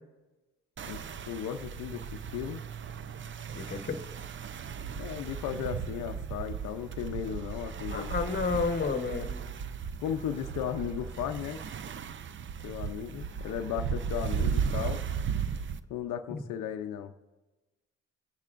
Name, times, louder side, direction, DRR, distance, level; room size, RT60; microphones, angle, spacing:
sound 1, 0.8-15.8, right 7 dB, 40° right, 0.6 m, -36 dB
voice 1, 0.9-2.6 5.0-8.1 10.0-11.6 12.6-15.0 15.9-17.1, left 9 dB, 85° left, 7 dB, 0.6 m, -36 dB
voice 2, 3.5-4.0 7.9-9.4 16.3-16.4, left 5 dB, 35° left, 7 dB, 1.1 m, -31 dB
24.5 x 10.5 x 2.5 m, 1.2 s
cardioid pair, 90°, 30 cm